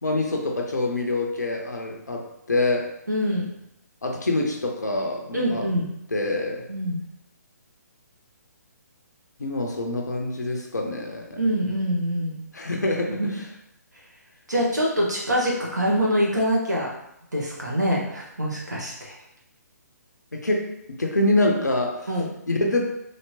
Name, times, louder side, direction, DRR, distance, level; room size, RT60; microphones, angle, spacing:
voice 1, 0.0-2.9 4.0-5.7 6.1-6.6 9.4-11.4 12.5-13.4 20.3-22.0 22.5-22.9, left 2 dB, 75° left, 1 dB, 0.6 m, -25 dB
voice 2, 3.1-3.4 5.3-5.9 6.7-7.0 11.4-12.4 13.2-13.3 14.5-16.9 17.3-19.1 22.1-22.2, equal, 75° right, -4 dB, 1.1 m, -24 dB
3.2 x 2.8 x 2.8 m, 0.80 s
figure-of-eight pair, 135°, 9 cm